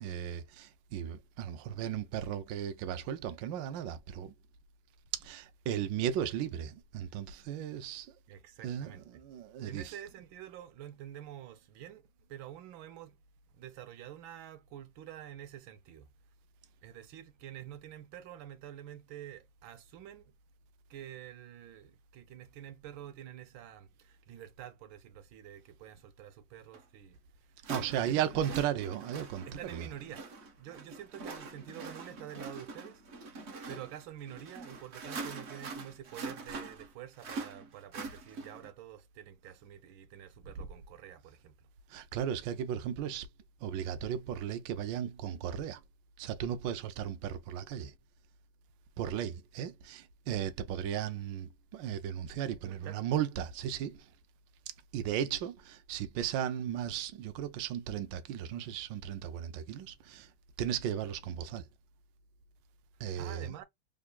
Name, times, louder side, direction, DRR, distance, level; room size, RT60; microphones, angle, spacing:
voice 1, 0.0-4.3 5.1-8.1 8.6-9.9 27.6-29.5 29.7-29.9 41.9-43.3 43.6-45.8 46.2-47.9 49.0-54.1 54.9-60.3 60.6-61.7 63.0-63.5, right 9 dB, 75° right, 1.3 m, -36 dB
voice 2, 8.3-9.2 9.6-12.0 12.3-13.2 13.5-16.1 16.8-20.3 20.9-27.2 27.6-27.7 27.9-28.6 29.5-30.3 30.6-33.0 33.7-41.7 52.6-53.0 63.2-63.6, right 11 dB, 90° right, 1.4 m, -48 dB
sound 1, 26.7-26.8 27.6-38.7, right 3 dB, 50° right, 0.8 m, -44 dB
3.7 x 3.4 x 2.2 m
omnidirectional pair, 2.2 m